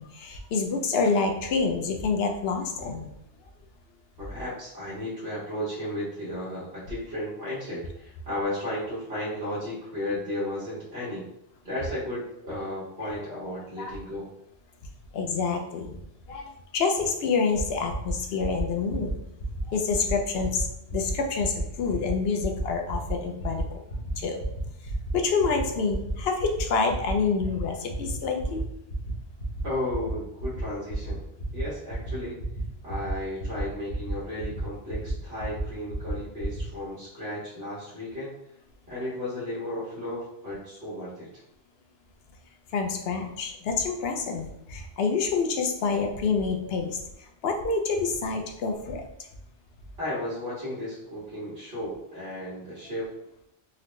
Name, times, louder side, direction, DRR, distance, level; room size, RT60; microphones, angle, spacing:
voice 1, 0.0-3.1 13.0-13.1 13.8-14.0 15.1-15.9 16.3-19.1 19.7-20.7 20.9-23.8 24.2-24.4 25.1-28.6 42.7-49.0, left 4 dB, 65° left, 4 dB, 0.7 m, -27 dB
voice 2, 4.2-11.2 11.6-14.3 29.6-31.2 31.5-32.4 32.8-38.3 38.9-41.3 50.0-53.1, left 1 dB, 50° right, -10 dB, 1.3 m, -34 dB
sound 1, 17.5-17.6 17.9-18.1 18.4-18.6 18.9-19.1 19.4-19.6 19.9-20.1 20.4-20.6 20.9-21.1 21.4-21.6 21.9-22.1 22.4-22.6 22.9-23.1 23.4-23.6 23.9-24.1 24.4-24.6 24.9-25.1 25.4-25.6 25.9-26.1 26.4-26.6 26.9-27.1 27.4-27.6 27.9-28.1 28.4-28.6 28.9-29.1 29.4-29.6 29.9-30.1 30.4-30.6 30.9-31.1 31.4-31.6 31.9-32.1 32.4-32.6 32.9-33.1 33.4-33.6 33.9-34.1 34.4-34.6 34.9-35.1 35.4-35.6 35.9-36.1 36.4-36.6, right 2 dB, 50° left, 1.1 m, -33 dB
4.0 x 2.1 x 3.0 m, 0.80 s
omnidirectional pair, 1.2 m